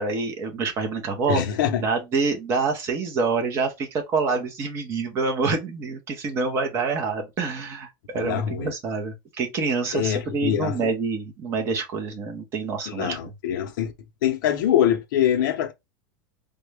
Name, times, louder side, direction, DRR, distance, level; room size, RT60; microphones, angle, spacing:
voice 1, 0.0-1.4 1.8-7.9 8.1-13.3, right 4 dB, 20° right, 0.7 m, -26 dB
voice 2, 1.3-1.8 8.1-8.7 9.9-10.8 12.9-13.9 14.2-15.7, left 10 dB, 65° left, 0.6 m, -24 dB
3.4 x 2.1 x 3.3 m
supercardioid pair, 175°, 11 cm